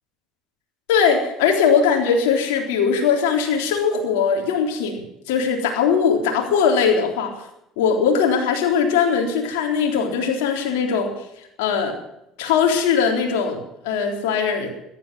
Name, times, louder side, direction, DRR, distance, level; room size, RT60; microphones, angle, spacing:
voice 1, 0.9-7.5 7.8-11.1 11.6-12.0 12.4-14.7, left 6 dB, 80° left, 1 dB, 3.8 m, -20 dB
14.5 x 12.0 x 7.8 m, 0.81 s
hypercardioid pair, 75°, 0 cm